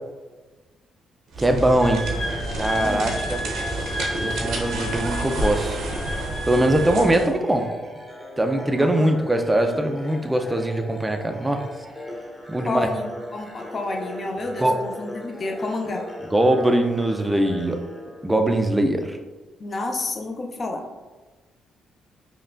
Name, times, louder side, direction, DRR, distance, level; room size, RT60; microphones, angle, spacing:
sound 1, 1.3-7.4, right 2 dB, 80° right, 0.8 m, -29 dB
voice 1, 1.4-2.0 2.6-3.4 4.2-5.8 6.5-7.7 8.4-11.6 12.5-12.9 14.6-14.8 16.3-17.8 18.2-19.2, right 1 dB, 10° right, 5 dB, 0.4 m, -21 dB
Wind instrument woodwind instrument, 1.8-7.1, equal, 70° left, 1.0 m, -33 dB
sound 2, 2.0-18.7, left 1 dB, 5° left, 0.8 m, -39 dB
voice 2, 2.8-3.1 8.8-9.1 12.6-16.1 19.6-20.8, left 2 dB, 40° left, 3 dB, 0.5 m, -30 dB
5.3 x 2.2 x 2.5 m, 1.2 s
cardioid pair, 90°, 0 cm